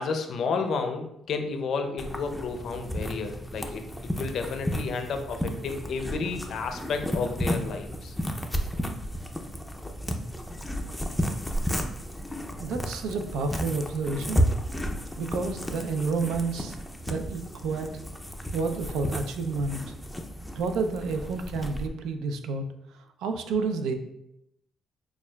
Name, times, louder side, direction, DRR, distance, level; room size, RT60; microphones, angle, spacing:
voice 1, 0.0-3.8 4.2-8.2, left 4 dB, 65° left, 6 dB, 0.5 m, -31 dB
sound 1, 2.0-21.9, equal, 5° left, 0.4 m, -32 dB
voice 2, 12.6-14.4 15.2-16.8 17.1-17.9 18.5-19.9 20.5-22.6 22.9-23.9, right 4 dB, 90° right, 6 dB, 0.4 m, -30 dB
6.2 x 2.3 x 2.2 m, 0.81 s
cardioid pair, 90°, 0 cm